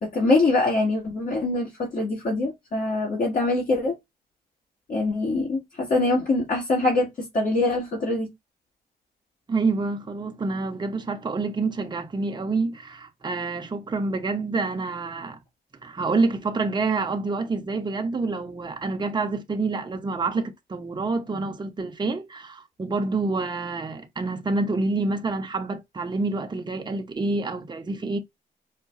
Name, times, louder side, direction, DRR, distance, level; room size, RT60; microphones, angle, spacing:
voice 1, 0.0-4.0 4.9-8.3, left 2 dB, 50° left, 1.8 m, -24 dB
voice 2, 9.5-15.4 15.8-28.2, right 3 dB, 25° right, 0.8 m, -27 dB
4.8 x 2.2 x 2.5 m
cardioid pair, 80°, 17 cm